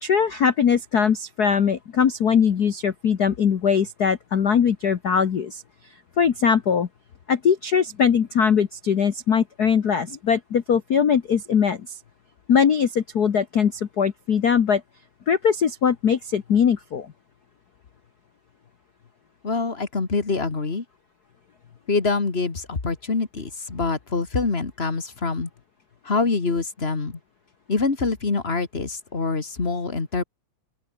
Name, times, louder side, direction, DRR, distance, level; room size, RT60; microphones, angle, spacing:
voice 1, 0.0-5.6 6.2-6.9 7.3-11.8 12.5-14.8 15.3-17.1, left 7 dB, 70° left, 0.9 m, -21 dB
voice 2, 19.4-20.8 21.9-25.5 26.0-27.2 27.7-30.2, left 4 dB, 25° left, 1.8 m, -25 dB
open air
omnidirectional pair, 3.5 m